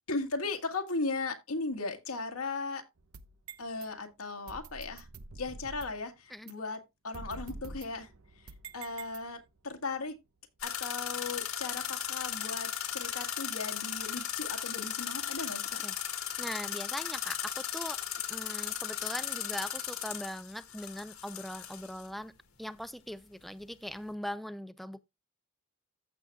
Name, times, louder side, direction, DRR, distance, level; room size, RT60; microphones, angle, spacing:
voice 1, 0.1-2.8 3.6-5.1 5.4-6.8 7.0-8.1 8.7-10.2 10.6-15.8, left 3 dB, 90° left, 1.9 m, -37 dB
sound 1, 3.0-3.9 4.5-6.1 6.5-6.6 7.1-9.6, right 3 dB, 80° right, 0.9 m, -47 dB
sound 2, 10.6-22.1, left 10 dB, 75° left, 1.8 m, -36 dB
voice 2, 16.4-18.0 18.3-22.3 22.6-25.0, equal, ahead, 0.4 m, -40 dB
14.5 x 6.7 x 2.3 m
head